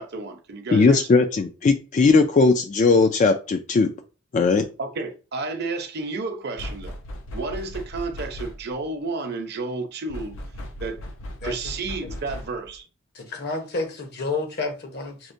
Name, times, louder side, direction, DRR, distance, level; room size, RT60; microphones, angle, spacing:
voice 1, 0.0-1.3 4.8-7.0 7.3-10.3 10.8-11.0 11.4-12.9, right 3 dB, 55° right, 0.7 m, -31 dB
voice 2, 0.7-3.9 4.3-4.7, left 4 dB, 40° left, 0.3 m, -18 dB
sound 1, 6.6-8.8 10.1-12.8, left 1 dB, 80° left, 0.7 m, -37 dB
voice 3, 13.1-15.3, left 3 dB, 55° left, 0.9 m, -30 dB
6.0 x 2.1 x 2.6 m
head